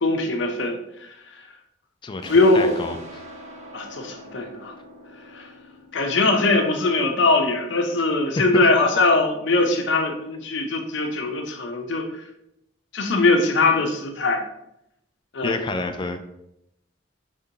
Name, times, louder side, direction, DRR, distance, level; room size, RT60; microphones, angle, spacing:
voice 1, 0.0-1.1 2.3-2.8 3.7-4.7 5.3-5.5 5.9-12.2 12.9-14.4 15.3-15.6, left 2 dB, 65° left, 4 dB, 0.6 m, -21 dB
voice 2, 2.0-3.2 8.4-8.7 15.4-16.2, left 2 dB, 25° left, 7 dB, 0.3 m, -29 dB
sound 1, 2.2-7.5, equal, 35° right, 0.8 m, -44 dB
5.2 x 3.4 x 2.8 m, 0.82 s
head